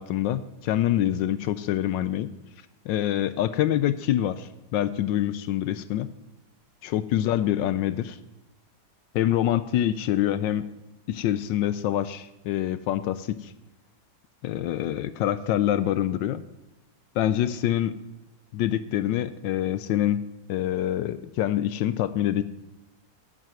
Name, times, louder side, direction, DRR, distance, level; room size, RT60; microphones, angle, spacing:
voice 1, 0.0-2.3 2.9-6.1 6.8-8.2 9.1-10.7 11.1-13.5 14.4-16.4 17.2-18.0 18.5-20.2 20.5-22.4, left 12 dB, 75° left, 14 dB, 1.2 m, -25 dB
11.0 x 7.6 x 7.6 m, 0.93 s
omnidirectional pair, 2.1 m